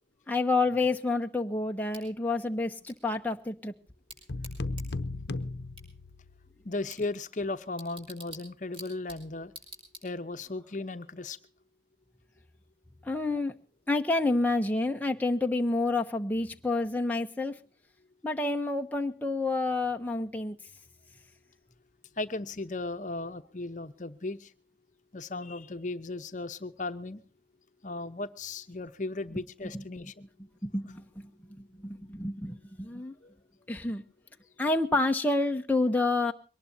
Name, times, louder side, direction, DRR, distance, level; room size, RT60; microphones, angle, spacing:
voice 1, 0.3-3.7 13.0-13.6 13.9-17.6 18.2-20.6 30.6-31.0 31.8-33.1 33.7-34.0 34.6-36.3, left 2 dB, 10° left, 3 dB, 0.8 m, -28 dB
Bicycle / Tick, 1.9-10.5, right 1 dB, 30° right, 5.2 m, -52 dB
sound 1, 4.3-6.5, left 2 dB, 70° left, 0.8 m, -35 dB
voice 2, 6.6-9.5 10.0-11.4 22.2-24.5 25.1-27.2 27.8-30.3 33.2-33.4, left 2 dB, 45° left, 9 dB, 0.9 m, -36 dB
22.5 x 19.0 x 2.7 m, 0.36 s
head